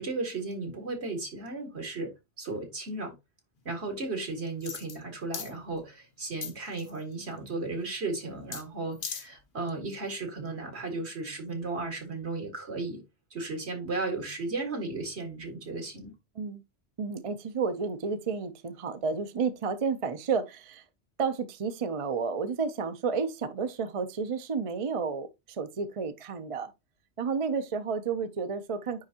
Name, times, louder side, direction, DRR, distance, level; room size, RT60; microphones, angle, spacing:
voice 1, 0.0-2.1 2.4-3.1 3.7-13.0 13.3-16.1, right 3 dB, 75° right, 2.2 m, -35 dB
sound 1, 4.6-5.0 5.3-5.5 6.4-7.0 8.5-8.6 8.9-9.3 9.7-9.8, left 6 dB, 55° left, 1.0 m, -37 dB
voice 2, 17.0-20.8 21.2-26.7 27.2-29.0, right 5 dB, 40° right, 0.6 m, -31 dB
9.6 x 3.5 x 2.8 m
omnidirectional pair, 1.1 m